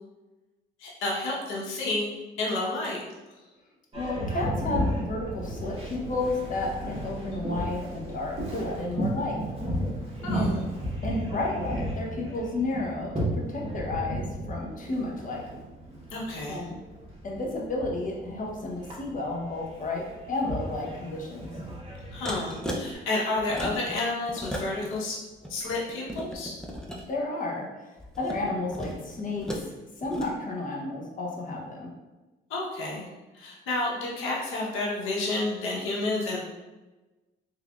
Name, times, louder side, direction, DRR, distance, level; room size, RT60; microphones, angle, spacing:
voice 1, 0.8-3.0 10.2-10.6 16.1-16.6 22.1-25.2 25.5-26.5 32.5-33.0 33.3-36.4, left 2 dB, 90° left, -4 dB, 1.0 m, -30 dB
voice 2, 3.9-9.4 10.3-10.6 11.0-15.4 16.5-16.8 17.2-21.5 27.1-29.6 30.0-31.9, left 2 dB, 40° left, -1 dB, 0.9 m, -32 dB
Boat Water vehicle, 3.9-22.9, equal, 30° right, 1.3 m, -34 dB
sound 1, 22.2-22.8 23.4-23.9 24.3-25.0 25.3-27.0 28.0-29.7 30.0-30.3, equal, 5° left, 0.6 m, -36 dB
3.5 x 3.3 x 2.4 m, 1.1 s
cardioid pair, 90°, 20 cm